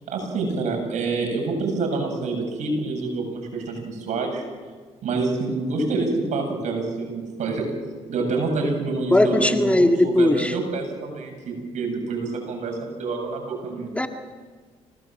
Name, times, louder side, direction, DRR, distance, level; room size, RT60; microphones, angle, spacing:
voice 1, 0.1-4.4 5.0-7.7 8.1-14.0, right 3 dB, 65° right, 3 dB, 7.7 m, -27 dB
voice 2, 9.1-10.5 13.9-14.1, left 1 dB, 10° left, 5 dB, 1.9 m, -18 dB
26.5 x 18.5 x 7.7 m, 1.5 s
supercardioid pair, 60°, 13 cm